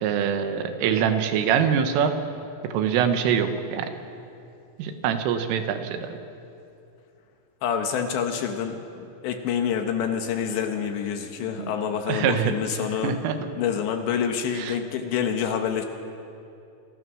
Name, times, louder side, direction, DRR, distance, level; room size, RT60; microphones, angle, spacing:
voice 1, 0.0-2.1 2.6-3.9 4.8-6.2 11.6-11.7 12.1-12.5 13.0-13.4 14.6-14.7, right 8 dB, 80° right, 7 dB, 3.8 m, -24 dB
voice 2, 7.6-13.2 13.6-15.9, left 7 dB, 70° left, 5 dB, 3.1 m, -27 dB
28.5 x 19.5 x 6.3 m, 2.7 s
omnidirectional pair, 5.8 m